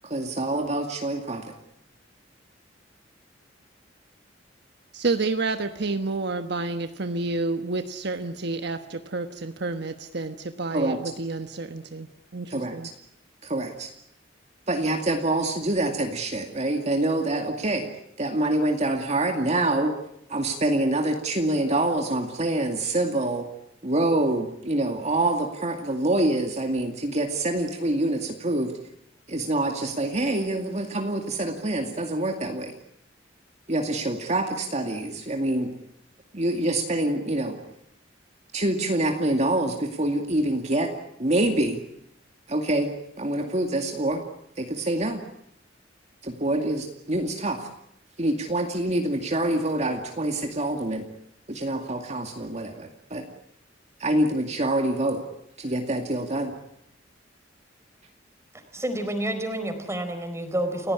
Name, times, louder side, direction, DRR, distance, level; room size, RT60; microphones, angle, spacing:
voice 1, 0.0-1.4 10.7-11.0 12.5-12.7 13.4-13.9 14.7-17.9 18.2-19.9 20.3-23.4 23.8-28.7 29.3-32.7 33.7-35.7 36.3-37.6 38.5-40.9 41.2-41.8 42.5-44.2 44.6-45.2 46.2-47.7 48.2-51.1 51.5-53.3 54.0-55.2 55.6-56.5, right 1 dB, 40° right, 3 dB, 2.3 m, -26 dB
voice 2, 4.9-12.9, right 3 dB, 65° right, 8 dB, 1.2 m, -29 dB
voice 3, 58.7-60.9, right 1 dB, 15° right, 7 dB, 4.4 m, -29 dB
29.5 x 16.5 x 9.8 m, 0.76 s
head